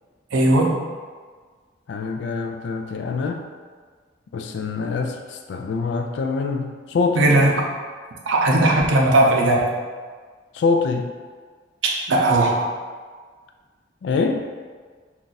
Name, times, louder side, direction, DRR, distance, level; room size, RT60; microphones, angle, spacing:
voice 1, 0.3-0.7 7.2-7.5 8.3-9.8 12.1-12.6, right 1 dB, 85° right, -1 dB, 0.5 m, -17 dB
voice 2, 1.9-3.4 4.3-7.3 10.5-11.1 14.0-14.5, left 4 dB, 65° left, 5 dB, 0.3 m, -24 dB
2.6 x 2.3 x 3.8 m, 1.5 s
head